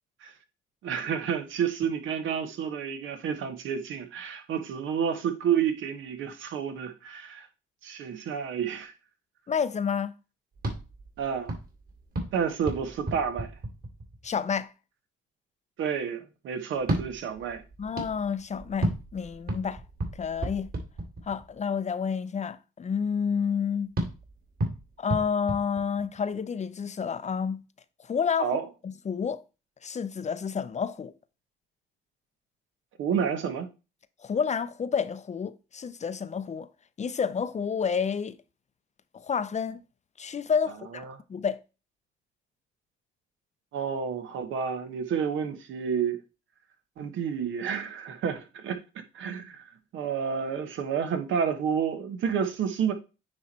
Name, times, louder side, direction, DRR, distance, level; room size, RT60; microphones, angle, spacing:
voice 1, 0.8-7.5 7.8-8.9 11.2-11.5 12.3-13.5 15.8-17.6 28.4-28.7 33.0-33.7 40.9-41.2 43.7-46.2 47.0-48.8 49.1-52.9, right 7 dB, 75° right, 1.3 m, -30 dB
voice 2, 9.5-10.1 14.2-14.7 17.8-19.8 20.2-20.7 21.3-23.9 25.0-27.6 28.0-29.4 29.8-31.1 34.2-36.7 37.0-38.4 39.1-39.8 40.2-41.0 41.3-41.6, left 6 dB, 35° left, 0.6 m, -29 dB
sound 1, 10.5-14.4 16.7-21.6 23.9-26.4, right 1 dB, 50° right, 2.8 m, -34 dB
9.4 x 3.2 x 4.2 m
cardioid pair, 90°, 20 cm